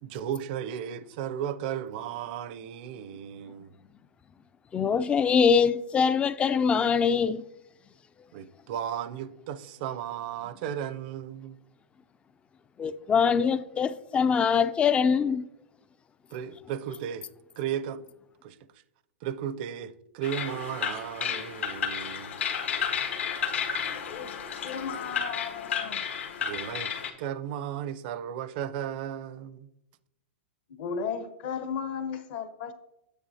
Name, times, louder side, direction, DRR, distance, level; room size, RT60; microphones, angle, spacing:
voice 1, 0.0-3.7 8.3-11.6 16.3-17.3 17.6-18.0 18.4-18.6 19.2-22.4 26.4-26.9 27.2-29.7, right 9 dB, 50° right, 0.6 m, -35 dB
voice 2, 4.7-7.4 12.8-15.5, left 6 dB, 15° left, 0.3 m, -23 dB
sound 1, 20.2-27.1, left 7 dB, 80° left, 1.4 m, -32 dB
voice 3, 24.1-26.1 30.8-32.7, left 6 dB, 55° left, 0.9 m, -35 dB
9.7 x 7.7 x 2.8 m
hypercardioid pair, 130°, 7 cm